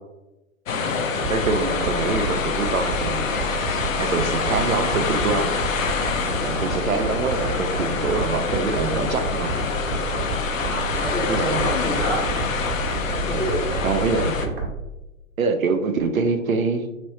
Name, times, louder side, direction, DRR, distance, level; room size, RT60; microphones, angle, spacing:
sound 1, 0.7-14.5, left 5 dB, 75° left, 0.6 m, -26 dB
sound 2, 1.2-14.8, right 3 dB, 45° right, 1.1 m, -30 dB
voice 1, 1.3-3.4 4.0-5.5 6.4-9.5 11.3-11.8 13.8-14.6 15.4-16.9, right 4 dB, 85° right, 7 dB, 0.6 m, -25 dB
voice 2, 10.7-12.2 13.2-13.8, right 1 dB, 5° left, -15 dB, 0.3 m, -28 dB
3.0 x 2.9 x 3.1 m, 1.0 s
figure-of-eight pair, 125°, 40 cm